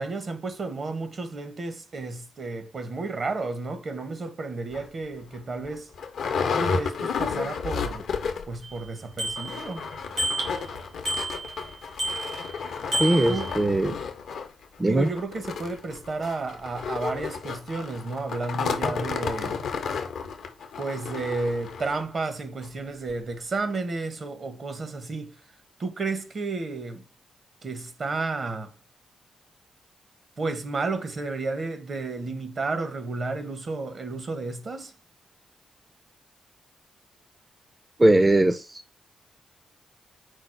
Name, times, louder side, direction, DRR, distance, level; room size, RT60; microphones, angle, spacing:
voice 1, 0.0-5.9 6.5-8.1 8.5-9.9 13.3-13.5 14.8-19.6 20.8-25.4 25.8-27.0 27.6-28.7 30.4-34.9, right 3 dB, 55° right, 0.8 m, -32 dB
sound 1, 4.7-4.9 5.3-5.4 5.6-8.6 8.9-9.0 9.2-22.0 22.6-22.7 23.1-23.2, left 5 dB, 75° left, 0.5 m, -32 dB
Bicycle bell, 8.6-8.7 9.2-9.8 10.2-10.7 11.1-11.7 12.0-12.5 12.9-13.6, right 1 dB, 75° right, 2.1 m, -30 dB
voice 2, 13.0-14.0 14.8-15.1 38.0-38.8, right 1 dB, 20° right, 0.4 m, -20 dB
4.7 x 2.0 x 4.4 m
supercardioid pair, 55°, 0 cm